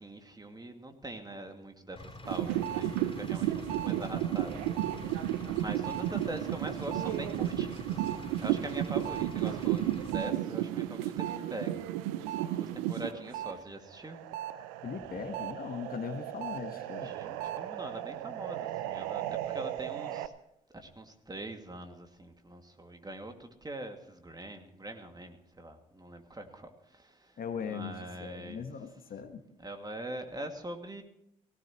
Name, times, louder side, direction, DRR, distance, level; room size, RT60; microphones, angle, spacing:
voice 1, 0.0-11.9 12.3-14.2 17.0-20.3 20.7-28.7 29.6-31.0, right 1 dB, 20° right, 5 dB, 2.4 m, -43 dB
Engine, 2.0-10.1, left 2 dB, 30° left, 4.1 m, -46 dB
sound 1, 2.2-13.5 13.9-20.3, right 13 dB, 80° right, 0.7 m, -34 dB
voice 2, 14.8-17.1 27.4-29.4, left 6 dB, 55° left, 8 dB, 1.4 m, -39 dB
17.5 x 16.5 x 3.1 m, 0.78 s
hypercardioid pair, 45°, 18 cm